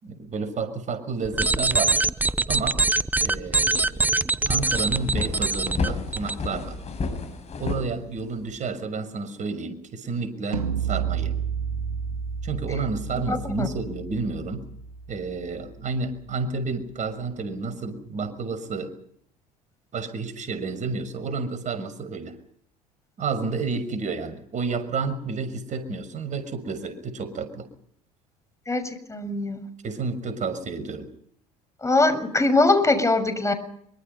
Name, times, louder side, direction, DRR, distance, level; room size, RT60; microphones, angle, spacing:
voice 1, 0.0-1.9 2.5-2.8 3.2-6.8 7.6-11.3 12.4-14.7 15.1-18.9 19.9-22.4 23.2-27.7 29.8-31.1, right 4 dB, 40° right, 12 dB, 6.4 m, -30 dB
sound 1, 1.2-6.3, right 3 dB, 10° right, 1.1 m, -23 dB
sound 2, 3.9-4.0 4.3-8.6, left 4 dB, 35° left, 7.8 m, -31 dB
sound 3, 10.5-16.5, right 7 dB, 80° right, 2.1 m, -32 dB
voice 2, 13.2-13.7 28.7-28.8 29.1-29.7 31.8-33.5, left 2 dB, 15° left, 9 dB, 6.8 m, -22 dB
25.5 x 25.0 x 5.6 m, 0.65 s
figure-of-eight pair, 60°, 19 cm